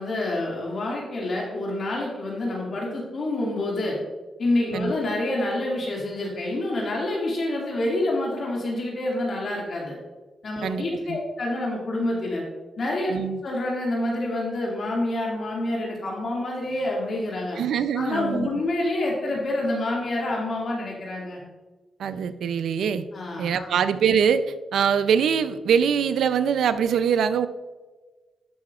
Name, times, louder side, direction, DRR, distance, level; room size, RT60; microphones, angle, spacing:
voice 1, 0.0-4.0 4.4-10.0 10.4-12.4 12.8-13.1 13.4-17.6 17.9-21.4 23.1-23.7, left 1 dB, 55° left, -3 dB, 2.2 m, -27 dB
voice 2, 10.6-11.2 13.1-13.4 17.6-18.5 22.0-23.1 23.4-27.5, right 7 dB, 80° right, 12 dB, 0.5 m, -23 dB
12.5 x 5.8 x 2.4 m, 1.3 s
cardioid pair, 65°, 0 cm